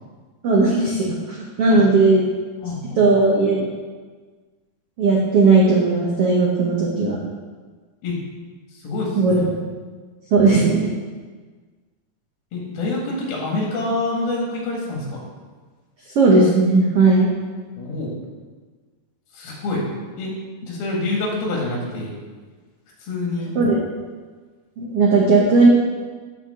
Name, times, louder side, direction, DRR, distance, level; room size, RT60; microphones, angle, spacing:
voice 1, 0.4-2.2 3.0-3.6 5.0-7.2 9.2-9.4 10.3-10.9 16.1-17.3 23.5-23.8 24.8-25.7, right 3 dB, 80° right, -4 dB, 1.3 m, -16 dB
voice 2, 2.6-3.0 8.0-8.2 8.7-9.5 10.4-10.6 12.5-15.2 17.8-18.1 19.3-19.8 20.2-20.3 20.6-22.2 23.0-23.5, left 2 dB, 80° left, -2 dB, 3.7 m, -26 dB
13.5 x 4.7 x 3.6 m, 1.4 s
omnidirectional pair, 4.3 m